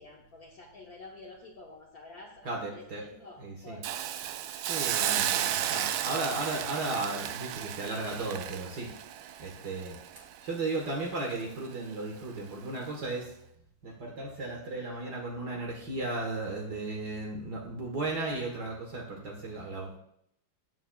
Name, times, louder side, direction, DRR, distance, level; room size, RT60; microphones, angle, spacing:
voice 1, 0.0-4.0, left 3 dB, 55° left, -2 dB, 1.4 m, -49 dB
voice 2, 2.4-3.1 3.4-3.8 4.7-8.9 9.4-10.0 10.4-13.3 13.8-20.0, right 2 dB, 60° right, -1 dB, 1.8 m, -35 dB
Hiss, 3.8-10.9 11.3-11.4, right 10 dB, 75° right, 0.9 m, -33 dB
19.0 x 7.1 x 2.3 m, 0.74 s
omnidirectional pair, 2.1 m